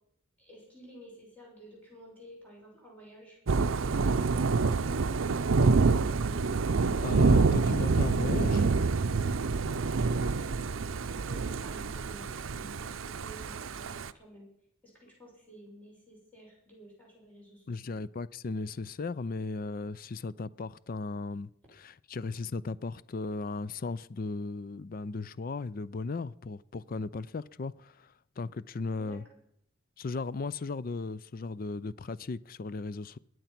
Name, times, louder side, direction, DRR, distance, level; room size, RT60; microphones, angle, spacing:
voice 1, 0.4-5.7 9.8-10.6 11.0-14.5 15.0-17.8 29.1-29.4, equal, 10° left, 6.7 m, -52 dB
Thunder / Rain, 3.5-14.1, right 4 dB, 80° right, 0.6 m, -27 dB
voice 2, 7.0-8.7 17.7-29.2 30.0-33.2, left 3 dB, 45° left, 0.4 m, -36 dB
21.5 x 8.0 x 5.9 m
head